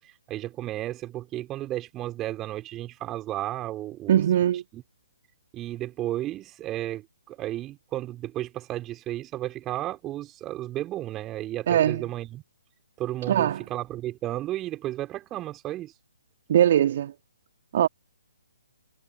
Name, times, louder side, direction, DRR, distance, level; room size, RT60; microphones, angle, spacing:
voice 1, 0.3-4.2 4.7-4.8 5.5-12.4 13.0-15.9, right 14 dB, 20° right, 5.0 m, -33 dB
voice 2, 4.1-4.6 11.7-12.1 13.3-13.6 16.5-17.1 17.7-17.9, right 10 dB, 40° right, 2.0 m, -21 dB
figure-of-eight pair, 130°, 0 cm